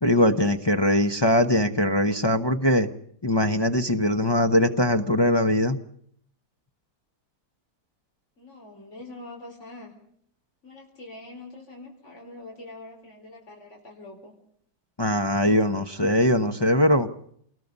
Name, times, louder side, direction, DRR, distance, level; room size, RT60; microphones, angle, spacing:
voice 1, 0.0-2.9 3.2-5.8 15.0-17.1, left 1 dB, 25° left, 5 dB, 0.6 m, -21 dB
voice 2, 8.4-9.9 10.6-14.3, left 2 dB, 40° left, 0 dB, 4.8 m, -44 dB
28.0 x 20.5 x 5.4 m, 0.65 s
omnidirectional pair, 1.8 m